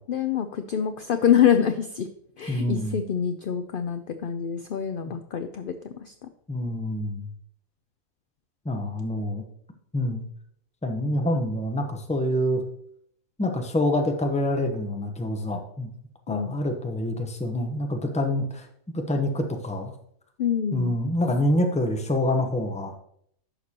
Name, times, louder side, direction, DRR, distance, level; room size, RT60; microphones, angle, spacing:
voice 1, 0.0-2.1 2.4-6.1 16.3-16.5 20.4-20.9, left 9 dB, 60° left, 8 dB, 0.5 m, -25 dB
voice 2, 2.5-3.0 6.5-7.3 8.6-9.4 9.9-10.2 10.8-12.6 13.4-15.9 16.3-18.7 18.9-19.9 20.7-22.9, left 1 dB, 5° left, 4 dB, 0.6 m, -26 dB
11.0 x 6.7 x 2.9 m, 0.69 s
omnidirectional pair, 1.4 m